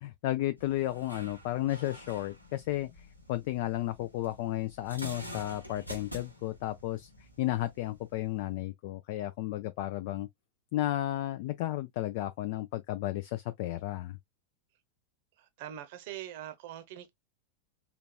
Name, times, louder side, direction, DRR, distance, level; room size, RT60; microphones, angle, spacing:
voice 1, 0.0-10.3 10.7-14.2, left 15 dB, 50° left, 0.3 m, -33 dB
sound 1, 0.6-8.6, equal, 85° left, 0.9 m, -48 dB
voice 2, 15.4-17.1, right 11 dB, 50° right, 0.7 m, -43 dB
3.9 x 2.2 x 2.3 m
figure-of-eight pair, 90°, 0 cm